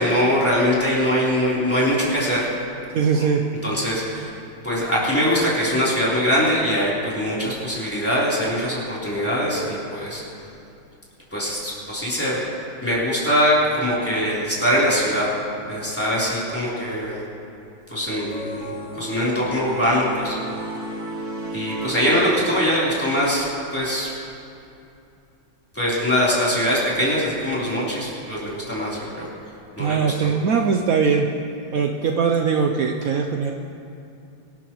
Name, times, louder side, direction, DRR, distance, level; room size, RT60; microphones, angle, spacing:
voice 1, 0.0-2.5 3.2-3.3 3.6-4.3 4.6-10.2 11.3-12.5 12.8-15.3 15.7-17.2 17.9-20.4 21.5-24.1 25.7-29.3 29.8-30.3, equal, 5° left, -8 dB, 3.6 m, -22 dB
voice 2, 2.9-3.4 29.8-31.3 31.7-33.5, right 6 dB, 75° right, 2 dB, 0.8 m, -21 dB
sound 1, 18.3-23.0, right 1 dB, 35° right, 1.7 m, -33 dB
24.0 x 12.0 x 3.1 m, 2.7 s
omnidirectional pair, 2.2 m